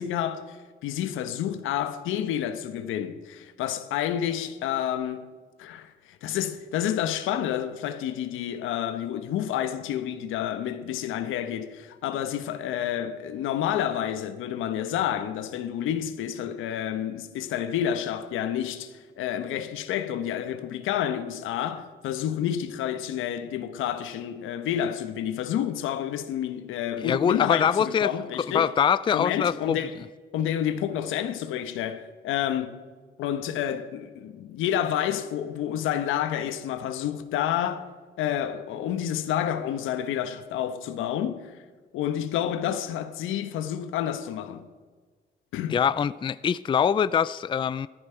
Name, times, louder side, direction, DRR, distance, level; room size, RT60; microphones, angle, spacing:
voice 1, 0.0-5.3 5.6-28.7 29.1-29.9 30.3-32.8 33.2-37.9 38.2-41.6 41.9-44.7 45.5-45.8, left 10 dB, 90° left, 1.0 m, -29 dB
voice 2, 27.0-28.1 28.5-29.8 45.7-47.9, left 7 dB, 25° left, 0.3 m, -23 dB
15.0 x 13.5 x 4.5 m
cardioid pair, 90°, 20 cm